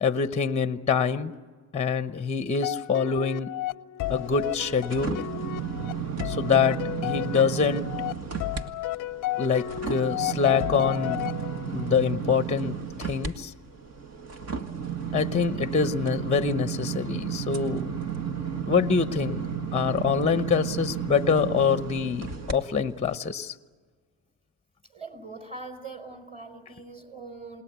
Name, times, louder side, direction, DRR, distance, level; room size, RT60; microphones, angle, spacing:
voice 1, 0.0-1.3 1.7-3.5 4.1-5.2 6.2-7.9 9.4-11.3 11.7-13.5 15.1-17.9 18.7-19.4 19.7-23.5, left 6 dB, 15° left, 11 dB, 0.9 m, -25 dB
sound 1, 2.6-11.9, left 15 dB, 55° left, 0.6 m, -33 dB
sound 2, 4.0-8.6 9.0-22.5 23.0-23.2, right 7 dB, 40° right, 1.9 m, -33 dB
voice 2, 24.9-27.6, right 3 dB, 15° right, 6 dB, 4.7 m, -42 dB
28.5 x 19.5 x 8.2 m, 1.5 s
cardioid pair, 105°, 38 cm